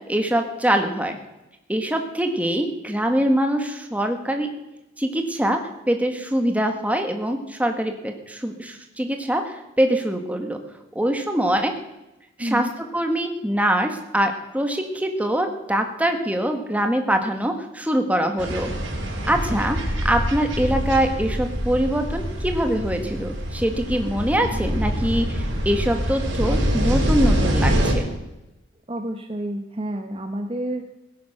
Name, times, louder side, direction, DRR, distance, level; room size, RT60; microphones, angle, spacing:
voice 1, 0.1-1.2 1.7-4.5 5.0-5.6 5.9-10.6 10.9-11.7 12.4-18.7 19.3-19.8 20.0-28.1, right 1 dB, 5° right, 5 dB, 1.6 m, -23 dB
voice 2, 12.4-12.7 19.5-19.7 28.9-30.8, right 1 dB, 30° right, 4 dB, 1.0 m, -29 dB
sound 1, 18.4-27.9, equal, 70° right, 4.4 m, -25 dB
17.0 x 10.5 x 6.6 m, 0.94 s
head